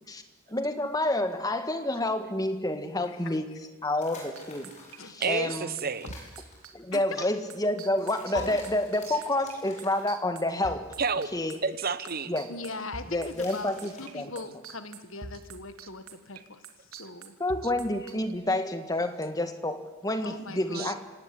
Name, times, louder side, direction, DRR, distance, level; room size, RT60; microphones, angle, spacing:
voice 1, 0.5-3.4 3.8-4.7 5.2-5.7 6.7-10.9 11.3-11.6 12.3-12.5 13.1-14.3 17.4-21.0, left 1 dB, 15° left, 7 dB, 1.7 m, -29 dB
voice 2, 3.1-3.4 4.1-4.2 5.0-5.1 6.9-7.0 8.3-8.6 12.5-13.7 14.0-16.6 16.9-17.3 20.2-21.0, left 3 dB, 60° left, 10 dB, 1.6 m, -39 dB
sound 1, 3.9-5.3 5.8-6.6 7.9-10.0 10.7-10.8 11.2-11.9 12.2-14.3 14.6-14.8 15.1-15.2 15.4-15.5, left 2 dB, 30° left, 7.0 m, -49 dB
sound 2, 4.3-14.1 14.4-18.4, right 4 dB, 75° right, 2.5 m, -43 dB
voice 3, 5.2-6.1 11.0-11.3 11.6-12.3 16.9-17.0 20.7-20.9, right 5 dB, 45° right, 14 dB, 1.0 m, -30 dB
26.5 x 17.5 x 9.9 m, 1.2 s
head